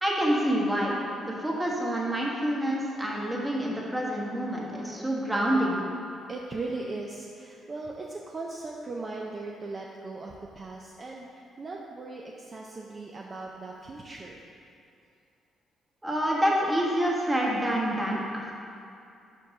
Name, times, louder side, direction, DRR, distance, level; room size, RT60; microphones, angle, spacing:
voice 1, 0.0-0.9 1.2-5.8 16.0-18.6, equal, 15° right, -3 dB, 1.2 m, -27 dB
voice 2, 6.3-14.4, right 3 dB, 35° right, -1 dB, 0.5 m, -38 dB
5.4 x 4.6 x 4.9 m, 2.6 s
cardioid pair, 90°, 0 cm